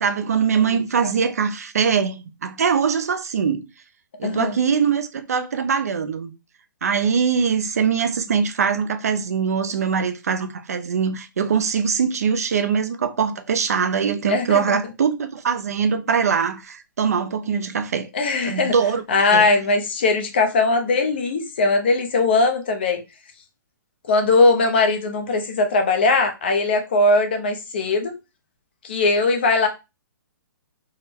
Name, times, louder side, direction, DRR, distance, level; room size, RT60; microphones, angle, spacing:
voice 1, 0.0-3.7 4.2-6.3 6.8-18.1 18.4-19.0 19.3-19.5, right 6 dB, 45° right, 0.4 m, -22 dB
voice 2, 4.2-4.6 14.3-14.8 18.1-18.7 19.1-23.0 24.1-28.1 28.8-29.7, left 3 dB, 30° left, 0.5 m, -20 dB
3.6 x 2.1 x 4.2 m
hypercardioid pair, 180°, 11 cm